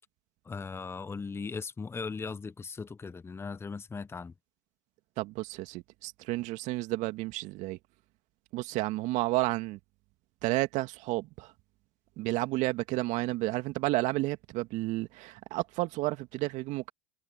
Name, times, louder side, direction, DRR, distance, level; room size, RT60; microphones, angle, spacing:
voice 1, 0.5-4.3, left 4 dB, 15° left, 1.0 m, -38 dB
voice 2, 5.2-7.8 8.5-9.8 10.4-11.5 12.2-16.9, right 20 dB, 55° right, 2.4 m, -31 dB
hypercardioid pair, 85°, 15 cm